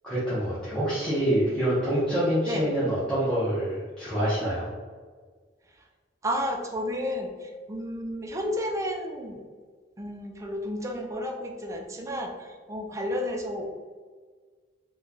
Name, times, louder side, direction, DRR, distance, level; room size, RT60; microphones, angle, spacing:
voice 1, 0.0-4.7, right 1 dB, 5° left, -12 dB, 0.8 m, -26 dB
voice 2, 6.2-9.4 10.0-13.7, equal, 15° right, 2 dB, 0.4 m, -32 dB
3.0 x 2.2 x 3.8 m, 1.5 s
head